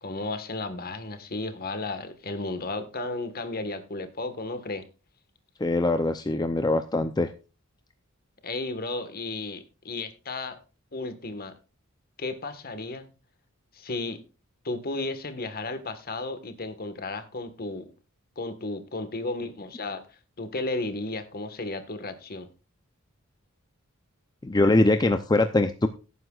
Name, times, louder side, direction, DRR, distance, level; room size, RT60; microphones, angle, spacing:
voice 1, 0.0-4.8 8.4-10.6 10.9-11.5 12.2-13.1 13.7-14.2 14.6-17.9 18.3-20.0 20.4-22.5, left 2 dB, 45° left, 1.5 m, -33 dB
voice 2, 5.6-7.3 24.4-25.9, left 2 dB, 20° left, 0.6 m, -22 dB
17.5 x 9.3 x 2.4 m
head